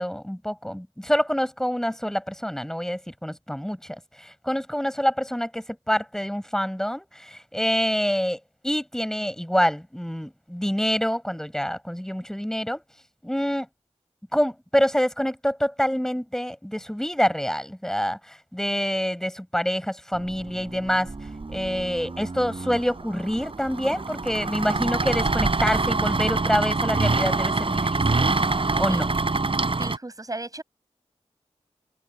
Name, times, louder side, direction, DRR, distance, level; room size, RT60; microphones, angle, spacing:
voice 1, 0.0-3.8 4.2-12.8 13.2-13.7 14.3-21.1 21.5-28.3 28.8-29.1, equal, 5° left, 5.9 m, -26 dB
sound 1, 20.2-30.0, right 3 dB, 50° right, 5.7 m, -25 dB
voice 2, 29.8-30.6, right 2 dB, 30° right, 7.7 m, -35 dB
wide cardioid pair, 65°, 12 cm